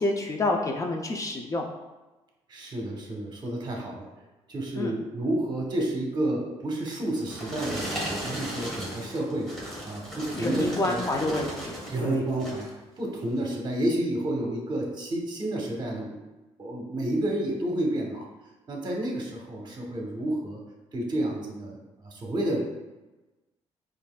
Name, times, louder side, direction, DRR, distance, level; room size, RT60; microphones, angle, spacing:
voice 1, 0.0-1.7 4.7-4.9 10.3-12.1, left 2 dB, 30° left, 1 dB, 0.5 m, -28 dB
voice 2, 2.5-4.1 4.5-9.5 9.8-11.0 11.9-12.7 13.0-16.1 16.6-18.3 18.7-20.6 20.9-22.6, right 1 dB, 40° right, -1 dB, 1.0 m, -30 dB
sound 1, 6.9-12.0 12.3-12.8 13.3-13.5, equal, 5° left, 1.3 m, -36 dB
5.2 x 2.6 x 2.3 m, 1.1 s
cardioid pair, 90°, 12 cm